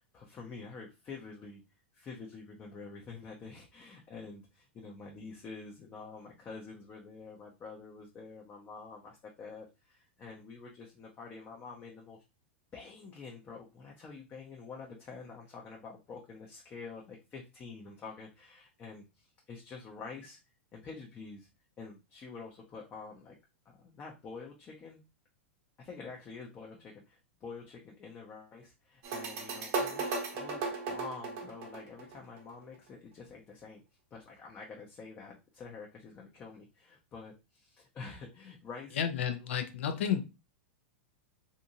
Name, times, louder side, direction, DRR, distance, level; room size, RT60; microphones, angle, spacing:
voice 1, 0.0-1.6 1.9-12.2 12.7-20.4 20.7-21.5 21.8-23.4 23.7-25.0 25.8-33.8 34.1-39.0, left 4 dB, 30° left, -1 dB, 0.6 m, -47 dB
sound 1, 29.0-32.5, right 3 dB, 50° right, 0.9 m, -36 dB
voice 2, 39.0-40.2, left 8 dB, 70° left, 7 dB, 0.5 m, -31 dB
2.7 x 2.6 x 2.6 m, 0.27 s
hypercardioid pair, 105°, 7 cm